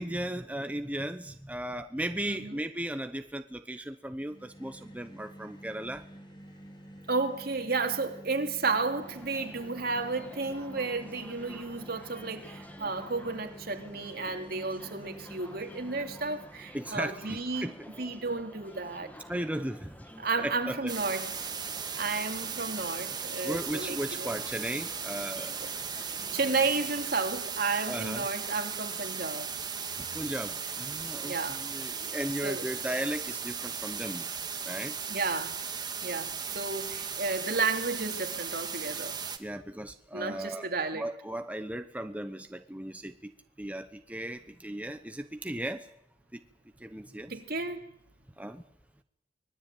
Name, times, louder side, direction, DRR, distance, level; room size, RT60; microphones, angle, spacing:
voice 1, 0.0-6.0 16.7-17.7 19.3-20.1 20.4-20.9 23.4-25.7 27.9-28.3 30.1-34.3 34.6-34.9 39.4-43.3 43.6-45.9 46.3-46.4 46.8-47.3 48.4-48.6, right 1 dB, 10° right, 0.9 m, -36 dB
voice 2, 2.3-2.6 7.1-17.7 18.0-19.1 20.2-21.5 22.0-24.3 25.6-25.7 26.3-29.5 31.2-31.6 32.4-32.7 35.1-35.6 36.0-39.2 40.1-41.1 47.3-47.9, right 4 dB, 55° right, 2.9 m, -32 dB
sound 1, 4.1-16.7, right 1 dB, 25° left, 5.4 m, -49 dB
sound 2, 9.0-27.1, equal, 10° left, 2.5 m, -50 dB
sound 3, 20.9-39.4, right 6 dB, 25° right, 2.0 m, -37 dB
25.0 x 20.5 x 9.1 m
head